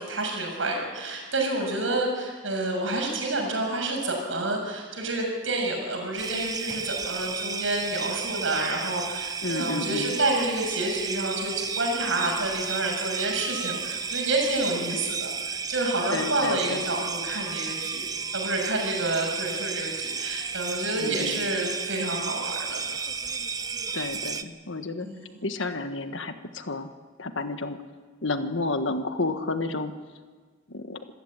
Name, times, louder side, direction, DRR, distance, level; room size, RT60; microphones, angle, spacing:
voice 1, 0.0-18.1 18.3-22.8 25.0-25.4, right 2 dB, 85° right, 2 dB, 6.8 m, -29 dB
sound 1, 6.2-24.4, right 5 dB, 20° right, 0.7 m, -33 dB
voice 2, 9.4-10.1 16.1-16.8 21.0-21.4 23.9-25.1 25.4-26.9 27.2-27.8 28.2-29.9 30.7-31.0, left 3 dB, 80° left, 8 dB, 1.5 m, -31 dB
26.0 x 14.5 x 8.9 m, 1.5 s
head